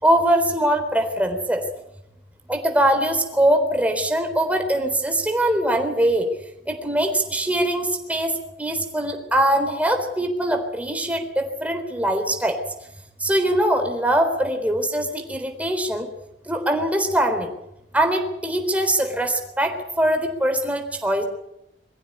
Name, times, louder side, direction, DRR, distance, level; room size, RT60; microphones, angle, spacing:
voice 1, 0.0-1.6 2.5-6.3 6.7-8.3 8.6-12.6 13.2-16.1 16.5-17.5 17.9-21.2, right 1 dB, 10° right, 4 dB, 3.9 m, -22 dB
23.5 x 15.0 x 9.7 m, 0.82 s
head